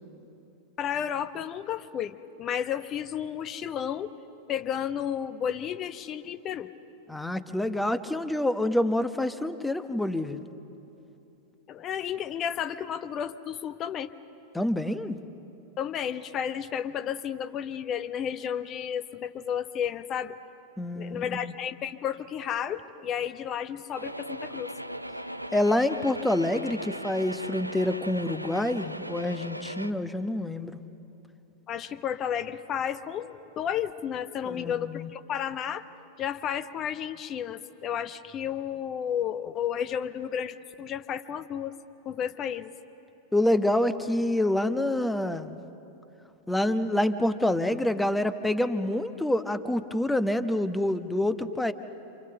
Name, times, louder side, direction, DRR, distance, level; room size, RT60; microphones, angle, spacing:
voice 1, 0.8-4.1 4.5-6.7 11.7-14.1 15.8-20.4 20.9-24.7 31.7-35.8 36.2-41.7 42.0-42.7, left 9 dB, 30° left, 14 dB, 0.9 m, -32 dB
voice 2, 7.1-10.4 14.5-15.2 20.8-21.4 25.5-30.8 34.5-35.1 43.3-45.6 46.5-51.7, left 1 dB, 5° left, 11 dB, 1.0 m, -27 dB
sound 1, 23.9-29.9, equal, 90° right, 0.7 m, -38 dB
28.0 x 28.0 x 6.9 m, 2.9 s
figure-of-eight pair, 90°, 0 cm